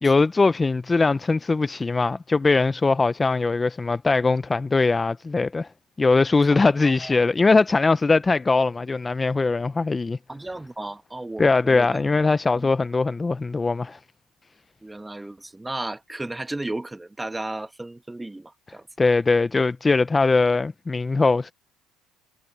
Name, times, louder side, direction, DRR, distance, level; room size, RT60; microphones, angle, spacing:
voice 1, 0.0-5.7 6.0-10.2 11.4-14.0 19.0-21.5, left 3 dB, 20° left, 0.5 m, -21 dB
voice 2, 6.5-7.2 10.3-12.0 12.5-12.7 14.8-18.9, right 2 dB, 10° right, 1.5 m, -34 dB
supercardioid pair, 90°, 0 cm